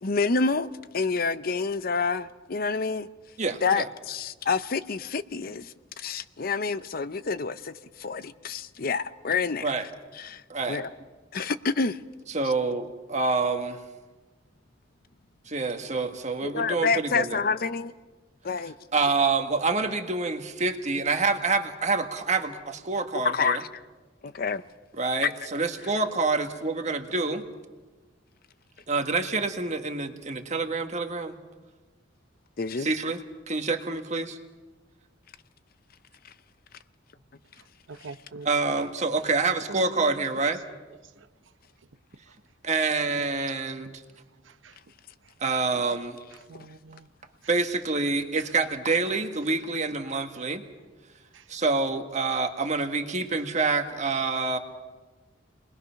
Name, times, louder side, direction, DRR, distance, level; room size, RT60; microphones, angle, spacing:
voice 1, 0.0-3.1 3.6-7.7 8.0-9.7 10.2-10.4 10.7-10.9 11.3-12.0 16.4-17.9 18.4-18.7 23.2-23.6 24.2-24.6 32.6-32.9, left 4 dB, 50° left, 0.6 m, -28 dB
voice 2, 3.4-3.9 9.6-9.9 10.5-10.8 12.3-13.8 15.5-17.4 18.9-23.6 25.0-27.4 28.9-31.3 32.8-33.2 33.5-34.4 38.4-40.6 42.6-44.0 45.4-46.2 47.5-50.6 51.5-54.6, right 3 dB, 40° right, 1.6 m, -27 dB
voice 3, 37.9-38.9 39.7-40.0 44.6-44.7 46.5-47.0, right 3 dB, 85° right, 0.8 m, -42 dB
30.0 x 21.0 x 5.8 m
head